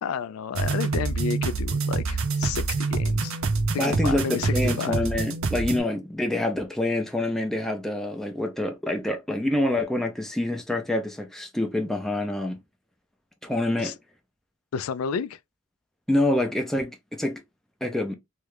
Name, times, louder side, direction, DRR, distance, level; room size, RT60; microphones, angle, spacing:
voice 1, 0.0-3.3 3.7-5.0 13.8-13.9 14.7-15.4, left 6 dB, 80° left, 0.3 m, -31 dB
sound 1, 0.5-5.8, right 3 dB, 65° right, 0.6 m, -26 dB
voice 2, 3.8-12.6 13.4-14.0 16.1-17.4 17.8-18.2, left 1 dB, ahead, 0.5 m, -26 dB
3.2 x 2.4 x 3.2 m
head